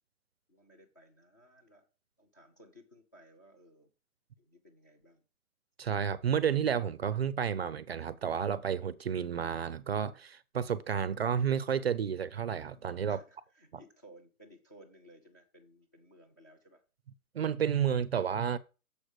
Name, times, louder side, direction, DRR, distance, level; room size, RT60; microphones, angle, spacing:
voice 1, 0.5-1.9 2.2-3.9 4.4-5.2 13.1-16.8, equal, 15° left, 0.5 m, -58 dB
voice 2, 5.8-13.2 17.3-18.6, right 8 dB, 45° right, 0.5 m, -31 dB
7.0 x 5.0 x 6.3 m
hypercardioid pair, 145°, 45 cm